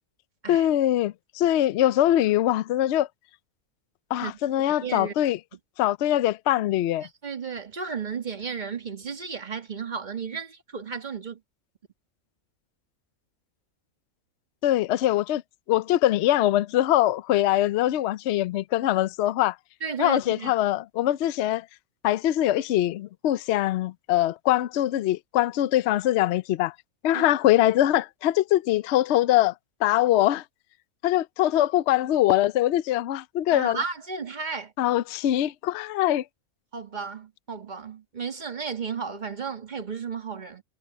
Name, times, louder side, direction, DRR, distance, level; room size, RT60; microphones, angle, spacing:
voice 1, 0.5-3.1 4.1-5.4 5.8-7.1 14.6-15.4 15.7-19.6 20.0-21.7 22.0-26.7 27.0-29.5 29.8-30.4 31.0-33.8 34.8-36.2, left 13 dB, 65° left, 0.7 m, -23 dB
voice 2, 4.8-5.1 7.0-11.4 19.8-20.5 27.1-27.2 33.5-34.7 36.7-40.6, right 5 dB, 30° right, 1.5 m, -33 dB
omnidirectional pair, 1.5 m